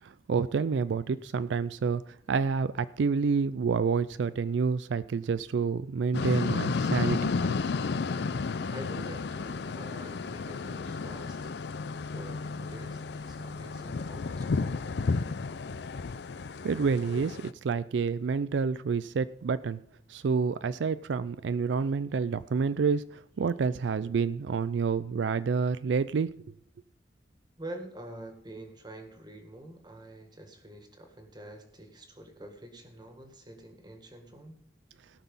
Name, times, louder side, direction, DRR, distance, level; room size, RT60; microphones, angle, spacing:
voice 1, 0.0-2.0 2.3-7.3 16.6-19.8 20.1-26.3, right 5 dB, 80° right, 15 dB, 0.4 m, -28 dB
sound 1, 6.1-17.5, left 4 dB, 65° left, 0.5 m, -32 dB
voice 2, 8.7-11.5 12.0-15.4 27.6-34.6, right 1 dB, 25° right, 5 dB, 1.8 m, -46 dB
17.5 x 6.1 x 5.4 m, 0.69 s
head